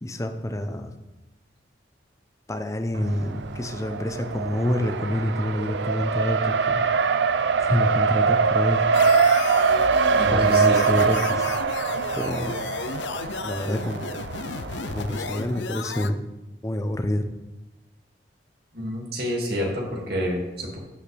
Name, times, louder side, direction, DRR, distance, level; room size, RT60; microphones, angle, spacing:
voice 1, 0.0-0.9 2.5-6.8 7.6-8.8 10.3-11.5 12.1-12.6 13.4-14.1 14.9-16.2 16.6-17.2, left 1 dB, 20° left, 7 dB, 0.7 m, -27 dB
Race car auto racing, 2.9-15.6, right 5 dB, 85° right, 0.5 m, -23 dB
sound 1, 8.9-16.1, left 5 dB, 85° left, 0.5 m, -33 dB
voice 2, 10.1-11.1 18.7-20.8, equal, 60° right, -2 dB, 2.4 m, -28 dB
15.5 x 5.6 x 3.4 m, 1.0 s
head